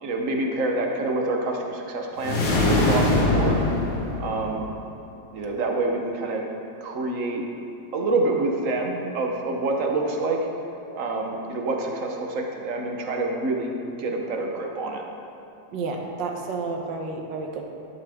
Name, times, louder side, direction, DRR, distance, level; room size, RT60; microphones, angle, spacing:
voice 1, 0.0-3.6 4.2-4.7 5.3-6.4 6.8-7.4 7.9-10.4 11.0-15.0, right 2 dB, 50° right, 1 dB, 1.2 m, -27 dB
sound 1, 2.2-4.8, left 2 dB, 70° left, 2.1 m, -22 dB
voice 2, 15.7-17.6, right 4 dB, 80° right, 2 dB, 1.6 m, -30 dB
11.0 x 8.7 x 3.5 m, 2.8 s
omnidirectional pair, 2.0 m